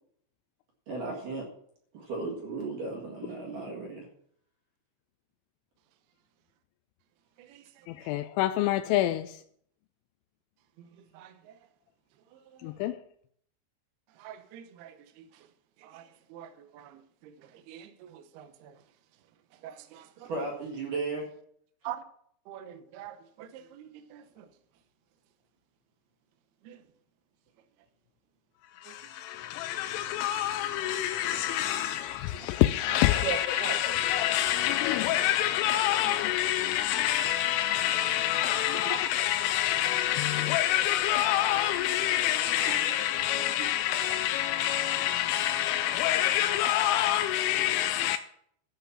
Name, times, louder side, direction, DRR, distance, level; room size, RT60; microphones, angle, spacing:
voice 1, 0.9-1.4 1.9-4.1 20.3-21.3, right 3 dB, 55° right, 2.9 m, -35 dB
voice 2, 7.9-9.4 12.6-13.0 28.7-48.2, left 13 dB, 85° left, 2.9 m, -27 dB
voice 3, 14.2-14.9 15.9-16.0 16.3-16.5 16.7-16.9 17.7-18.5 19.6-20.0 21.8-22.0 22.5-24.2 26.7-26.8 33.2-33.8 43.6-43.7, right 9 dB, 85° right, 2.2 m, -40 dB
12.5 x 5.7 x 7.2 m
omnidirectional pair, 5.9 m